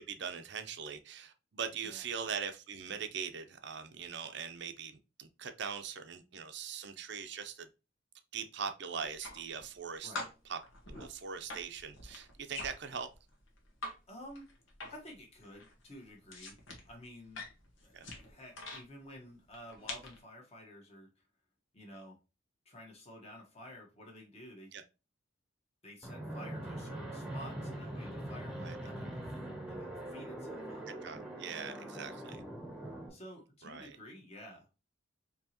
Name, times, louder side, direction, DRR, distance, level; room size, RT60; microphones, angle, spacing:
voice 1, 0.0-7.7 8.3-10.1 10.5-10.6 10.9-13.1 17.9-18.1 24.7-24.8 28.6-28.8 31.0-32.4 33.6-34.0, right 6 dB, 60° right, 0.6 m, -41 dB
sound 1, 8.9-9.8 10.1-14.0 14.3-15.2 15.4-18.8 19.5-20.2, left 2 dB, 85° left, 1.3 m, -45 dB
voice 2, 14.1-14.5 14.9-16.6 16.9-17.5 17.8-21.2 21.7-22.2 22.6-24.7 25.8-29.2 29.7-30.9 33.1-34.7, equal, 35° left, 1.3 m, -51 dB
Fixed-wing aircraft airplane, 26.0-33.1, right 1 dB, 5° right, 0.9 m, -42 dB
4.5 x 2.9 x 2.9 m
head